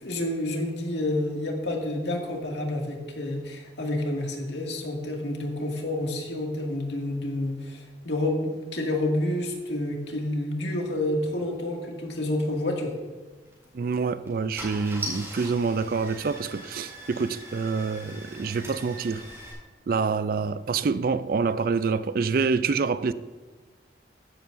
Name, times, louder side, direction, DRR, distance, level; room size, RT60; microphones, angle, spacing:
voice 1, 0.0-12.9, left 1 dB, 75° left, 2.1 m, -29 dB
Car / Engine starting, 13.5-13.7 14.3-14.4 14.6-19.5, right 1 dB, 15° right, 3.6 m, -40 dB
voice 2, 13.7-19.2 19.9-23.1, right 4 dB, 55° right, 0.4 m, -26 dB
14.5 x 11.0 x 2.6 m
head